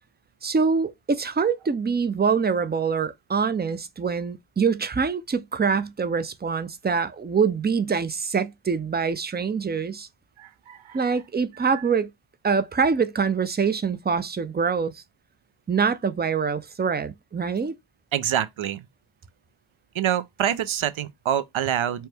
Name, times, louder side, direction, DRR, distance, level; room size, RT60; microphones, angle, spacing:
voice 1, 0.4-10.1 10.9-12.1 12.4-15.0 15.7-17.7, right 5 dB, 20° right, 0.4 m, -24 dB
voice 2, 10.4-11.1 11.6-11.7 18.1-18.9 19.9-22.1, right 10 dB, 70° right, 0.6 m, -26 dB
4.4 x 2.2 x 3.3 m
wide cardioid pair, 75°, 50 cm